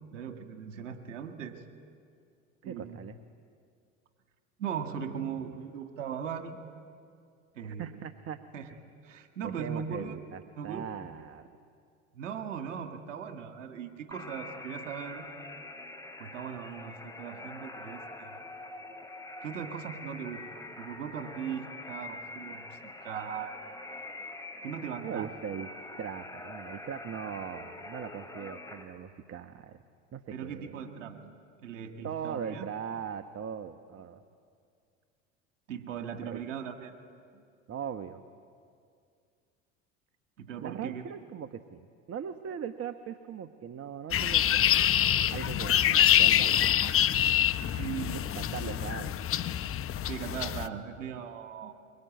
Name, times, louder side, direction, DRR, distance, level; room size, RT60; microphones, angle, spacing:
voice 1, 0.1-1.6 2.6-3.0 4.6-6.6 7.6-7.9 8.5-8.7 9.0-10.2 10.6-10.9 12.1-15.3 16.2-18.4 19.4-23.5 24.6-25.3 30.3-31.3 31.6-32.7 35.7-37.0 37.3-37.4 40.4-41.0 47.8-48.2 50.1-51.7, right 7 dB, 85° right, 7 dB, 2.1 m, -39 dB
voice 2, 2.6-3.2 7.6-8.4 9.4-11.5 25.0-25.7 26.0-29.8 30.1-30.8 32.0-34.2 36.2-36.5 37.7-38.2 40.6-44.8 45.3-47.2 48.1-49.2, right 8 dB, 40° right, 10 dB, 1.2 m, -40 dB
sound 1, 14.1-28.8, left 2 dB, 10° left, 3.3 m, -45 dB
sound 2, 44.1-50.7, left 11 dB, 35° left, 0.9 m, -25 dB
24.0 x 23.0 x 9.3 m, 2.3 s
hypercardioid pair, 80°, 37 cm